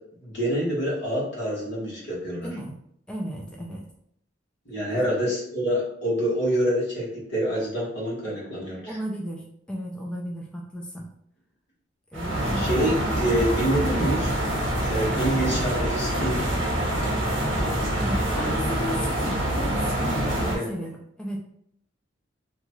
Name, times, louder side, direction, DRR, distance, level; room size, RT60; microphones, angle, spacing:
voice 1, 0.2-2.5 4.6-8.8 12.6-14.3 14.8-16.5 20.5-20.7, equal, 65° left, -5 dB, 1.2 m, -26 dB
voice 2, 2.4-2.7 3.1-3.9 4.9-5.1 8.9-11.1 12.1-12.7 17.7-21.4, equal, 5° left, -1 dB, 0.3 m, -35 dB
sound 1, 12.1-20.6, right 1 dB, 80° right, 0.9 m, -25 dB
2.8 x 2.3 x 3.0 m, 0.72 s
head